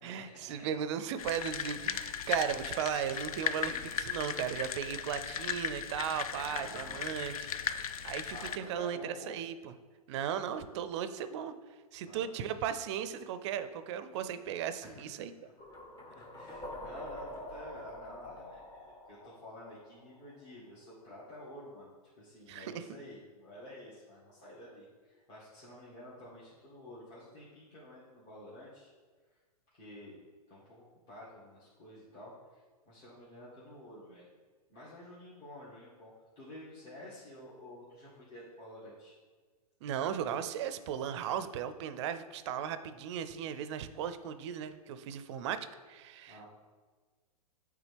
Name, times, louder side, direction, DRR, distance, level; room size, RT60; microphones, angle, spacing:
voice 1, 0.0-3.7 4.0-9.7 10.1-11.5 11.9-15.3 22.5-23.0 39.8-46.5, right 8 dB, 45° right, 11 dB, 0.5 m, -36 dB
sound 1, 1.2-8.6, left 8 dB, 65° left, 0.5 m, -37 dB
voice 2, 3.6-4.0 6.3-7.0 8.3-9.3 12.0-12.3 14.8-15.0 16.0-21.9 22.2-28.9 29.3-29.4 29.7-30.1 30.5-34.3 34.7-39.2 46.3-46.5, left 1 dB, 40° left, -9 dB, 1.9 m, -50 dB
sound 2, 15.6-20.5, left 1 dB, 20° left, 0.9 m, -46 dB
8.6 x 3.6 x 3.4 m, 1.4 s
hypercardioid pair, 115°, 20 cm